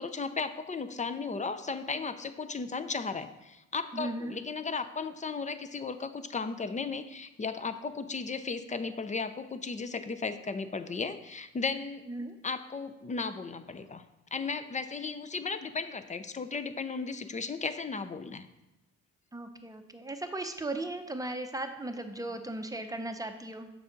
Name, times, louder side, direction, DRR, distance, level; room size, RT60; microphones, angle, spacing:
voice 1, 0.0-12.0 12.4-14.0 14.3-18.5, left 4 dB, 25° left, 10 dB, 0.5 m, -35 dB
voice 2, 3.9-4.4 12.1-12.4 19.3-23.7, right 2 dB, 10° right, 7 dB, 0.7 m, -37 dB
6.9 x 6.4 x 3.9 m, 0.97 s
cardioid pair, 90°, 30 cm